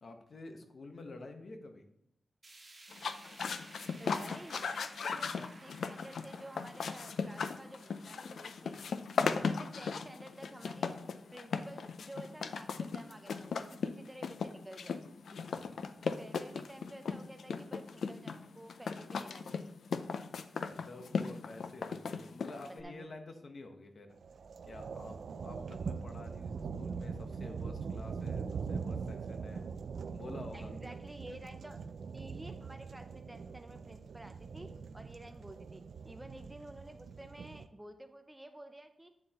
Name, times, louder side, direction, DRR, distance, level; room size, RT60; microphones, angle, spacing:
voice 1, 0.0-1.8 15.3-15.8 20.7-24.2 24.6-29.6 30.1-30.8 35.2-35.4, left 2 dB, 50° left, 5 dB, 1.1 m, -49 dB
sound 1, 2.4-12.6 13.0-13.1 13.5-13.6 14.4-14.5, right 2 dB, 25° right, 1.9 m, -58 dB
sound 2, 2.9-22.8, left 5 dB, 80° left, 0.5 m, -37 dB
voice 2, 4.0-8.8 9.2-11.0 11.3-15.0 16.2-19.8 22.5-23.2 30.5-31.8 32.1-39.1, right 1 dB, 10° right, 7 dB, 0.5 m, -51 dB
sound 3, 24.1-37.7, right 5 dB, 70° right, 0.4 m, -42 dB
8.7 x 7.6 x 3.0 m, 0.76 s
wide cardioid pair, 155°, 0 cm